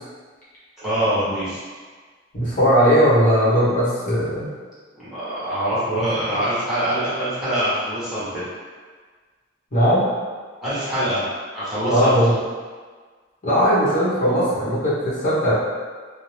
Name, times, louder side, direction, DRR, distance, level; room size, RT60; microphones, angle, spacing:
voice 1, 0.8-1.6 5.0-8.4 10.6-11.2 11.5-12.2, right 1 dB, ahead, -13 dB, 1.0 m, -24 dB
voice 2, 2.3-4.5 6.0-6.1 9.7-10.1 11.9-12.3 13.4-15.5, equal, 45° left, -10 dB, 1.0 m, -18 dB
2.6 x 2.0 x 3.0 m, 1.5 s
head